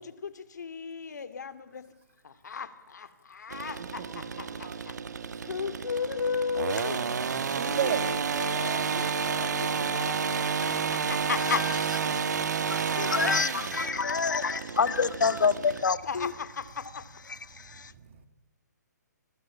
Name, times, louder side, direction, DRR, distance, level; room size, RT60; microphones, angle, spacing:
voice 1, 0.0-1.8 2.2-7.1 7.6-11.7 13.3-13.4 15.8-17.1, left 6 dB, 70° left, 2.7 m, -36 dB
sound 1, 3.5-15.8, right 6 dB, 65° right, 2.0 m, -31 dB
voice 2, 7.4-8.1 10.0-10.4 17.5-18.3, right 9 dB, 40° right, 2.5 m, -34 dB
voice 3, 12.5-16.3 17.3-17.9, left 5 dB, 90° left, 1.7 m, -28 dB
29.0 x 22.0 x 8.6 m
hypercardioid pair, 170°, 10 cm